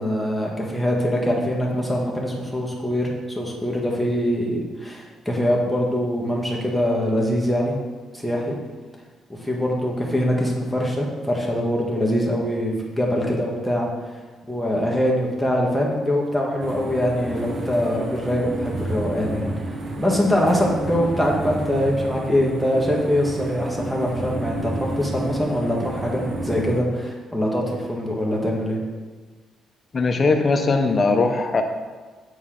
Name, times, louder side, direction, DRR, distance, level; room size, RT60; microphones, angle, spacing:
voice 1, 0.0-7.8 8.1-8.6 9.3-13.9 14.5-19.5 20.0-28.8, equal, ahead, -3 dB, 1.5 m, -23 dB
sound 1, 16.6-26.8, right 2 dB, 45° right, 1.0 m, -31 dB
voice 2, 29.9-31.6, left 3 dB, 35° left, 5 dB, 0.7 m, -19 dB
8.2 x 4.2 x 3.8 m, 1.4 s
cardioid pair, 90°, 0 cm